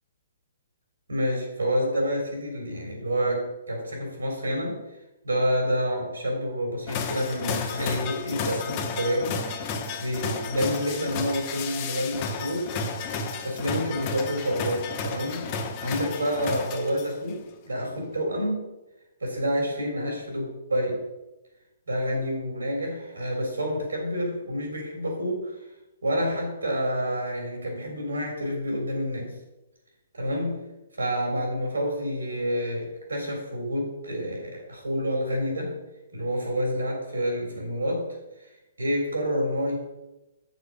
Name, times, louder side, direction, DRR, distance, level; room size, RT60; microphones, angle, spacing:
voice 1, 1.1-4.8 5.2-9.7 10.0-12.7 13.0-15.5 15.8-18.6 19.2-21.0 21.9-25.5 26.0-29.3 30.1-30.6 31.0-35.8 36.1-38.1 38.4-38.5 38.8-39.8, equal, 85° right, 1 dB, 3.5 m, -28 dB
sound 1, 6.9-17.3, left 4 dB, 35° left, 1.4 m, -32 dB
8.3 x 7.0 x 5.1 m, 0.97 s
figure-of-eight pair, 130°, 0 cm